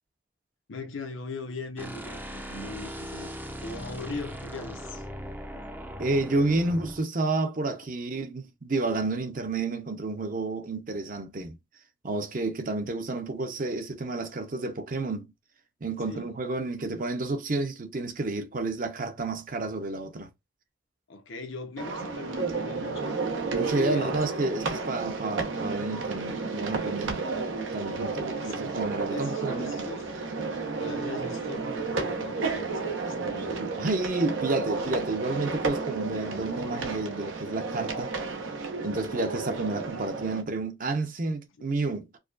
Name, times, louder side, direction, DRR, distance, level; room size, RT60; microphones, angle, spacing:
voice 1, 0.7-5.1 16.0-16.3 21.1-23.2 23.7-24.7 28.3-28.5 29.1-30.2 30.7-33.6, left 3 dB, 85° left, 0.8 m, -40 dB
sound 1, 1.8-7.0, equal, 10° right, 0.5 m, -39 dB
voice 2, 6.0-11.6 12.0-15.3 15.8-20.3 23.5-27.3 27.7-29.7 33.6-38.1 38.8-42.1, right 2 dB, 45° right, 0.7 m, -30 dB
sound 2, 21.8-40.4, right 4 dB, 85° right, 0.8 m, -32 dB
4.8 x 2.3 x 2.4 m
head